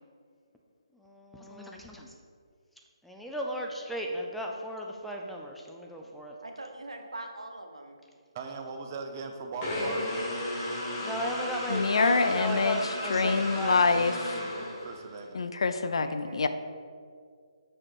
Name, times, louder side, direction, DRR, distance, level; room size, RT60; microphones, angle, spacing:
voice 1, 0.9-2.1 3.0-6.4 11.0-13.9, equal, ahead, -1 dB, 0.4 m, -36 dB
voice 2, 6.4-8.0 16.0-16.4, right 2 dB, 85° right, 4 dB, 0.9 m, -42 dB
voice 3, 8.3-10.1 14.6-15.5 16.2-16.5, right 4 dB, 35° right, 4 dB, 0.7 m, -39 dB
sound 1, 9.6-15.2, left 1 dB, 25° left, 1.4 m, -34 dB
voice 4, 11.7-12.8 13.1-14.4 15.3-16.5, left 4 dB, 70° left, 10 dB, 0.4 m, -25 dB
6.4 x 4.4 x 4.5 m, 2.1 s
figure-of-eight pair, 150°, 3 cm